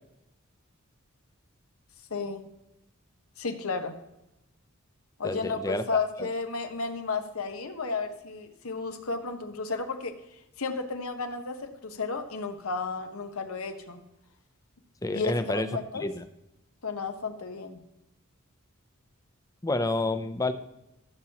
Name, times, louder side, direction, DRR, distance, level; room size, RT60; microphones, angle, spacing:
voice 1, 2.1-2.4 3.4-4.0 5.2-10.1 10.6-14.0 15.1-16.1 16.8-17.8, left 4 dB, 90° left, 7 dB, 1.1 m, -33 dB
voice 2, 5.2-6.0 15.0-16.2 19.6-20.5, left 2 dB, 15° left, 11 dB, 0.6 m, -29 dB
14.5 x 7.2 x 2.9 m, 0.90 s
head